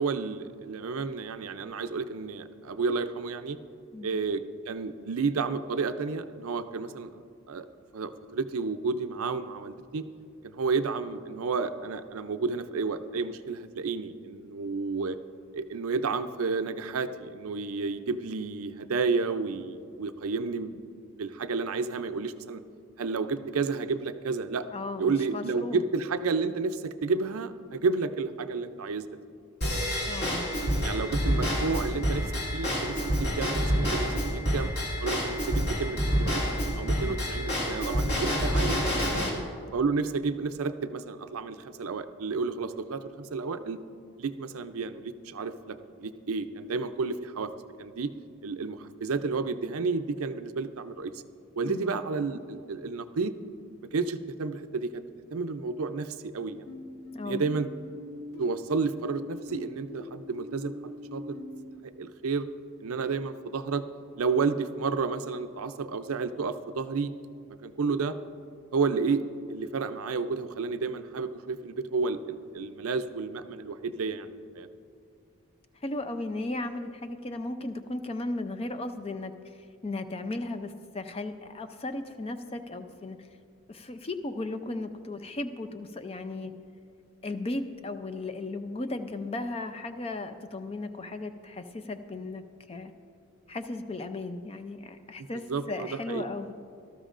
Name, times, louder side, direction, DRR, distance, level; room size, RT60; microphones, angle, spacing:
voice 1, 0.0-3.6 4.0-7.1 7.5-7.7 7.9-10.0 10.5-15.2 15.5-20.8 21.2-22.6 23.0-24.7 25.0-29.0 30.8-34.7 35.0-36.4 36.8-39.0 39.7-43.8 44.2-47.5 47.8-48.1 48.4-51.2 51.6-53.3 53.9-55.1 55.3-56.7 57.2-57.7 58.4-61.4 61.8-62.5 62.8-63.8 64.2-67.1 67.6-68.2 68.7-74.7 95.2-96.2, right 4 dB, 75° right, 10 dB, 0.5 m, -31 dB
voice 2, 3.9-4.4 24.7-25.8 30.1-30.5 37.0-37.2 39.0-39.4 51.7-51.9 57.1-57.5 75.8-79.5 79.8-83.3 83.7-86.5 87.2-92.9 93.5-96.5, left 2 dB, 25° left, 9 dB, 0.5 m, -36 dB
Drum kit / Drum / Bell, 29.6-39.3, equal, 45° left, 2.3 m, -28 dB
sound 1, 56.7-61.7, left 1 dB, 80° left, 3.3 m, -43 dB
18.0 x 13.0 x 2.5 m, 2.4 s
head